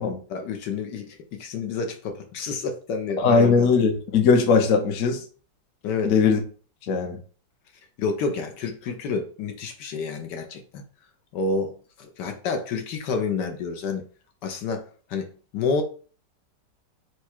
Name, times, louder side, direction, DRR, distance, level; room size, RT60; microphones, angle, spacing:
voice 1, 0.3-3.7 5.8-6.1 8.0-10.8 11.3-14.0 14.4-15.3 15.5-15.8, left 4 dB, 75° left, 5 dB, 1.3 m, -29 dB
voice 2, 3.2-5.2 6.0-6.4 6.9-7.2, left 5 dB, 55° left, 4 dB, 0.9 m, -19 dB
4.7 x 2.2 x 4.3 m, 0.39 s
omnidirectional pair, 2.0 m